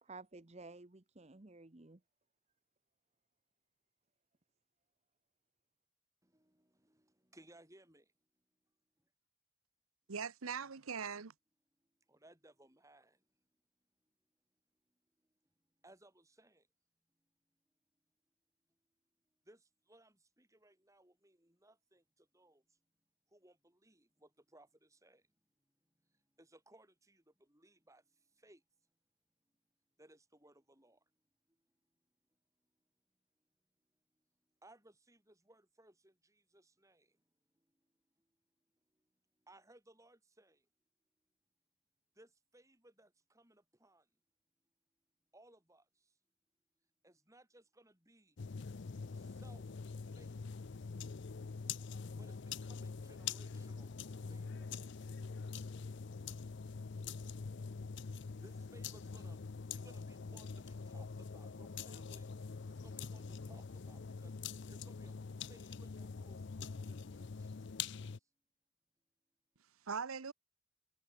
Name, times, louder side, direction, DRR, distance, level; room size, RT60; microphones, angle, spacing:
voice 1, 0.0-2.0, right 3 dB, 30° right, 1.0 m, -53 dB
voice 2, 6.2-8.1 12.1-13.2 15.8-16.7 19.5-22.8 23.3-25.2 26.4-28.6 30.0-31.0 34.6-37.2 39.5-40.7 42.2-44.1 45.3-46.1 47.0-48.4 49.1-49.7 50.1-50.6 52.2-54.0 54.3-54.7 58.2-59.4 59.7-62.3 62.7-65.2 65.5-67.6, right 1 dB, 15° right, 7.0 m, -64 dB
voice 3, 10.1-11.3 69.9-70.3, right 6 dB, 85° right, 1.0 m, -41 dB
sound 1, 48.4-68.2, left 5 dB, 55° left, 0.5 m, -45 dB
head